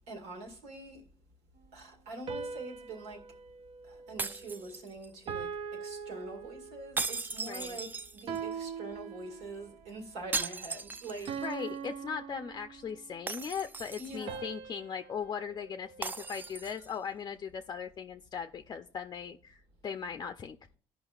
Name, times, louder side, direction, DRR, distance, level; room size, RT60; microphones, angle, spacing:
voice 1, 0.1-1.1 1.7-3.3 3.8-11.4 14.0-14.5, right 2 dB, 85° right, 2.0 m, -44 dB
sound 1, 2.3-4.8 5.3-7.0 8.3-9.8 11.3-13.1 14.3-16.6, right 6 dB, 55° right, 0.6 m, -42 dB
sound 2, 4.2-5.3 7.0-8.5 10.3-11.5 11.9-12.0 13.3-14.3 16.0-17.0, right 3 dB, 20° right, 0.4 m, -38 dB
voice 2, 7.5-7.8 11.4-20.8, left 7 dB, 40° left, 0.5 m, -39 dB
15.5 x 5.2 x 2.4 m
cardioid pair, 100°, 11 cm